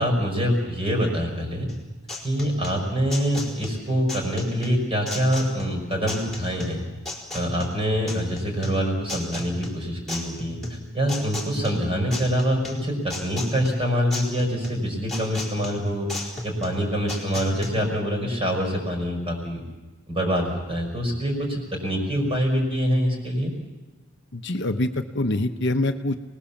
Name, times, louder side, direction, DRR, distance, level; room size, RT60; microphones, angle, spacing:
voice 1, 0.0-1.7 2.2-6.8 7.3-16.1 16.4-19.6 20.1-23.5, equal, 25° right, 2 dB, 5.6 m, -25 dB
sound 1, 1.7-17.7, left 2 dB, ahead, 4.4 m, -35 dB
voice 2, 24.3-26.1, left 2 dB, 50° left, 7 dB, 1.0 m, -25 dB
29.5 x 20.0 x 7.3 m, 1.2 s
head